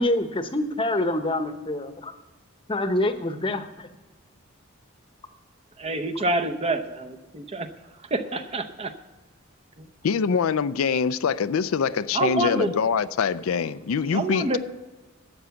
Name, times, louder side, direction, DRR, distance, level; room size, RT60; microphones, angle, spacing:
voice 1, 0.0-2.1 2.7-3.9, left 1 dB, 25° left, 0.9 m, -26 dB
voice 2, 5.8-7.7 8.1-8.9 9.8-9.9 12.1-12.7 14.1-14.6, right 2 dB, 30° right, 0.8 m, -27 dB
voice 3, 10.0-14.6, left 6 dB, 85° left, 0.4 m, -24 dB
12.5 x 7.9 x 7.0 m
head